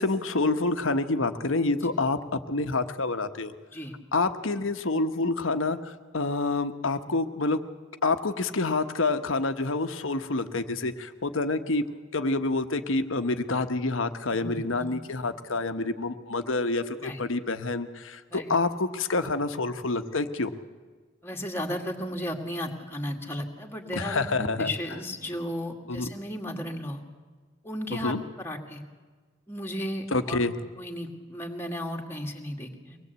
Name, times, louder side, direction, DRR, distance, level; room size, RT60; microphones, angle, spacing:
voice 1, 0.0-3.5 4.1-7.6 8.0-11.8 12.1-20.5 23.9-24.7 25.9-26.1 27.9-28.2 30.1-30.5, left 3 dB, 80° left, 9 dB, 1.2 m, -27 dB
voice 2, 14.3-14.9 17.0-17.2 18.3-18.6 21.2-27.0 27.6-28.8 29.5-30.4 30.8-33.0, left 1 dB, 10° left, 1 dB, 2.1 m, -35 dB
23.5 x 19.5 x 8.2 m, 1.4 s
head